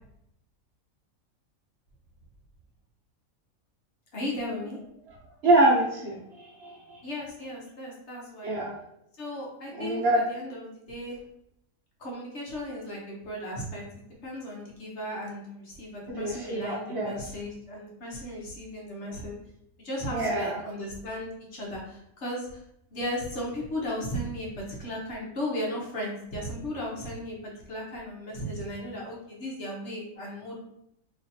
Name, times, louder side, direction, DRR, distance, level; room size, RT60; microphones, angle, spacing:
voice 1, 4.1-4.8 7.0-8.5 9.2-11.2 12.0-19.3 19.8-22.5 22.9-30.5, equal, 55° left, -3 dB, 1.1 m, -36 dB
voice 2, 5.4-7.0 8.4-8.7 9.7-10.2 16.1-17.2 20.1-20.6, right 2 dB, 55° right, -3 dB, 0.8 m, -25 dB
3.9 x 3.0 x 2.7 m, 0.78 s
omnidirectional pair, 1.5 m